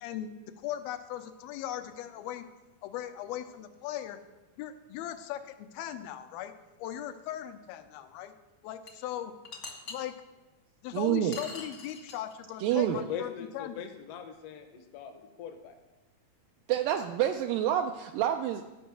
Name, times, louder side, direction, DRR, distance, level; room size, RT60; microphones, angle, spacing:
voice 1, 0.0-2.5 2.8-4.2 4.6-6.5 6.8-8.3 8.6-9.3 9.9-10.2 10.8-13.8, left 11 dB, 90° left, 8 dB, 2.5 m, -38 dB
sound 1, 8.9-9.0 9.4-10.0 11.3-12.3, left 4 dB, 55° left, 1.0 m, -42 dB
voice 2, 10.9-11.4 12.6-13.1 16.7-18.6, right 11 dB, 80° right, 5 dB, 2.0 m, -28 dB
voice 3, 12.9-15.7, left 7 dB, 75° left, 5 dB, 1.4 m, -41 dB
13.5 x 5.5 x 7.4 m, 1.1 s
omnidirectional pair, 4.3 m